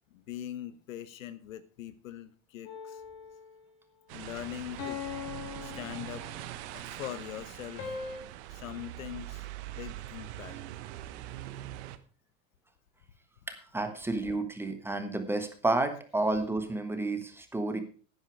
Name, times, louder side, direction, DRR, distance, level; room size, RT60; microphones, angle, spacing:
voice 1, 0.1-3.0 4.1-5.0 5.6-6.3 6.7-7.9 8.5-10.6, left 11 dB, 85° left, 13 dB, 1.2 m, -42 dB
sound 1, 2.6-3.7 4.8-6.7 7.8-8.2, left 6 dB, 50° left, 4.8 m, -41 dB
sound 2, 4.1-12.0, right 14 dB, 55° right, 1.2 m, -43 dB
voice 2, 13.5-17.8, right 2 dB, 5° right, 7 dB, 1.4 m, -31 dB
10.5 x 9.9 x 4.7 m, 0.40 s
supercardioid pair, 130°, 39 cm